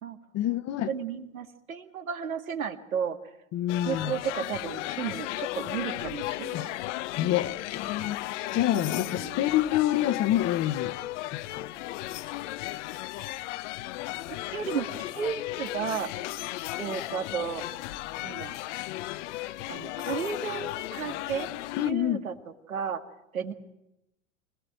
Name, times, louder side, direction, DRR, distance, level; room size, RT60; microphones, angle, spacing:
voice 1, 0.3-0.9 3.5-4.1 6.5-6.7 7.2-8.2 8.5-10.9 11.3-11.7 21.8-22.2, left 13 dB, 40° left, 1.2 m, -27 dB
voice 2, 0.9-3.2 3.9-6.7 8.7-9.4 14.3-14.9 15.1-16.1 16.8-17.6 18.2-18.6 19.7-21.5 21.8-22.3 22.7-23.0 23.3-23.5, right 7 dB, 85° right, 2.1 m, -33 dB
sound 1, 3.7-21.9, left 17 dB, 60° left, 0.9 m, -35 dB
26.0 x 17.5 x 9.1 m
hypercardioid pair, 95°, 40 cm